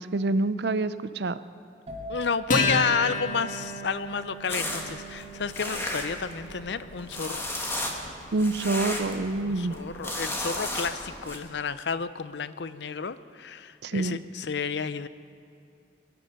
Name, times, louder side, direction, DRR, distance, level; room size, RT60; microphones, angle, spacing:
voice 1, 0.0-1.4 8.3-9.8 13.8-14.2, right 2 dB, 65° right, 14 dB, 0.6 m, -27 dB
sound 1, 1.9-9.4 9.7-10.2, right 2 dB, 35° right, 2.5 m, -45 dB
voice 2, 2.1-7.5 9.4-15.1, left 5 dB, 65° left, 14 dB, 0.6 m, -31 dB
Acoustic guitar, 2.5-9.3, left 2 dB, 45° left, 2.5 m, -33 dB
sound 2, 4.5-11.4, left 1 dB, 15° left, 1.6 m, -35 dB
21.0 x 11.5 x 5.4 m, 2.5 s
head